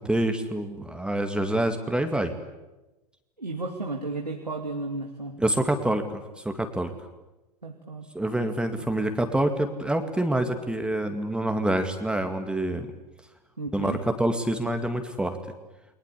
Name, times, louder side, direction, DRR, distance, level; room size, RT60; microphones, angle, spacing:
voice 1, 0.1-2.3 5.4-6.0 6.4-6.9 8.1-12.9 13.7-15.4, right 1 dB, 5° right, 6 dB, 2.3 m, -26 dB
voice 2, 3.4-5.4 7.6-8.1 8.8-8.9 13.6-14.0, right 2 dB, 85° right, 2 dB, 2.5 m, -33 dB
30.0 x 22.5 x 8.5 m, 1.0 s
figure-of-eight pair, 90°, 20 cm